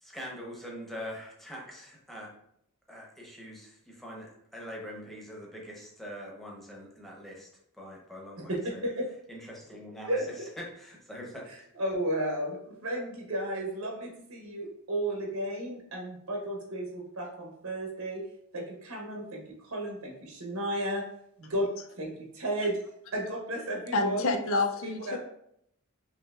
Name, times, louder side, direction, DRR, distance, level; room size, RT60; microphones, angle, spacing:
voice 1, 0.0-2.3 2.9-7.5 7.8-8.8 9.3-10.1 10.8-11.4, equal, ahead, -3 dB, 0.9 m, -43 dB
voice 2, 8.4-9.0 10.1-10.3 11.5-18.3 18.5-21.0 21.4-22.8 23.1-24.3 24.8-25.2, right 1 dB, 85° right, 0 dB, 1.0 m, -33 dB
voice 3, 23.9-25.2, left 2 dB, 70° left, 5 dB, 0.5 m, -28 dB
5.5 x 2.7 x 2.4 m, 0.73 s
head